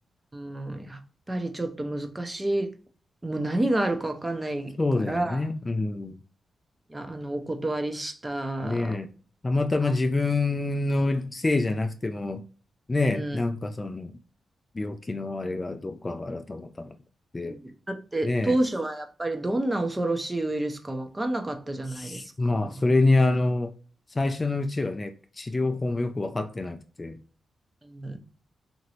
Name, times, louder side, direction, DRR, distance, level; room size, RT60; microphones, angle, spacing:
voice 1, 0.3-1.0 1.3-2.7 3.2-5.4 6.9-9.0 13.1-13.4 17.4-17.6 17.9-22.8 27.8-28.2, right 1 dB, 20° right, 0.6 m, -29 dB
voice 2, 4.8-6.2 8.6-9.1 9.4-12.4 12.9-14.1 14.8-16.9 17.3-17.6 18.2-18.6 21.9-23.7 24.2-27.2, left 2 dB, 25° left, 0.3 m, -26 dB
3.0 x 2.6 x 2.8 m
cardioid pair, 75°, 0 cm